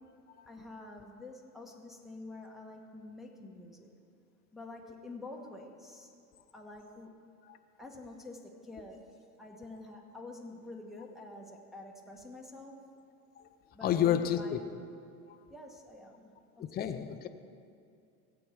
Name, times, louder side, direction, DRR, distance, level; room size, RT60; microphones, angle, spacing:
voice 1, 0.5-3.9 4.5-6.1 6.5-7.1 7.8-9.1 9.4-12.8 13.7-14.6 15.5-16.6 16.9-17.0, left 2 dB, ahead, -1 dB, 1.2 m, -47 dB
voice 2, 13.3-14.6 15.3-15.4 16.6-17.3, left 10 dB, 20° left, 8 dB, 0.5 m, -31 dB
17.0 x 7.9 x 3.4 m, 2.4 s
hypercardioid pair, 85°, 45 cm